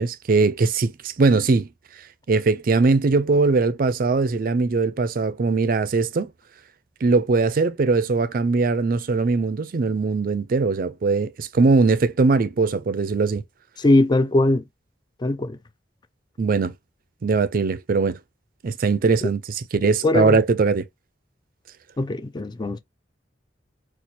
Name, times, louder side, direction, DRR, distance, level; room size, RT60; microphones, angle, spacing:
voice 1, 0.0-1.7 2.3-6.3 7.0-13.4 16.4-16.7 17.2-18.2 18.6-20.9, right 4 dB, 50° right, 0.4 m, -20 dB
voice 2, 13.8-14.6 15.2-15.6 19.2-19.3 20.0-20.4 22.0-22.8, left 2 dB, 25° left, 0.4 m, -20 dB
4.2 x 2.4 x 2.8 m
head